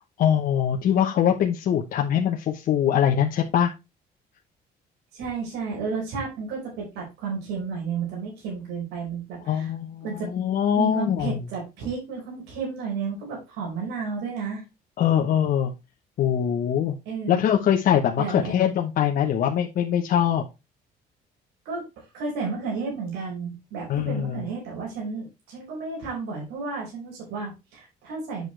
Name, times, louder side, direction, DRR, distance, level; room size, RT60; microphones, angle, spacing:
voice 1, 0.2-3.7 9.5-11.4 15.0-15.7 16.2-17.0 17.3-20.4 23.9-24.4, left 9 dB, 60° left, 2 dB, 1.0 m, -23 dB
voice 2, 5.1-9.7 10.0-10.3 10.7-14.6 17.0-17.4 18.2-18.6 21.6-21.8 22.1-28.5, right 5 dB, 85° right, -2 dB, 5.0 m, -32 dB
8.3 x 6.5 x 3.3 m, 0.25 s
cardioid pair, 110°, 17 cm